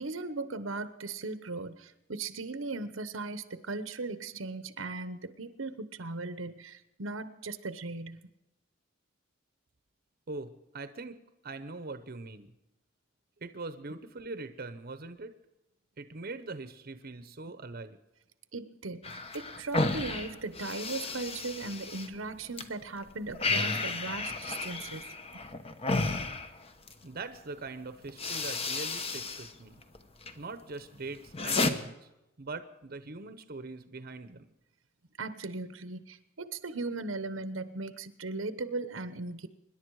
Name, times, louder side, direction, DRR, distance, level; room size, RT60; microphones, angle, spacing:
voice 1, 0.0-8.2 18.5-25.1 35.2-39.5, right 3 dB, 85° right, 12 dB, 1.0 m, -38 dB
voice 2, 10.3-11.2 11.4-12.5 13.4-15.3 16.0-18.0 27.0-29.8 30.4-31.9 32.4-34.5, right 3 dB, 50° right, 10 dB, 0.9 m, -42 dB
sound 1, 19.0-22.6 23.0-27.0 27.7-27.8 28.1-29.5 29.8-30.4 30.8-31.7, left 3 dB, 30° left, 1.0 m, -33 dB
25.5 x 11.0 x 4.8 m, 0.94 s
head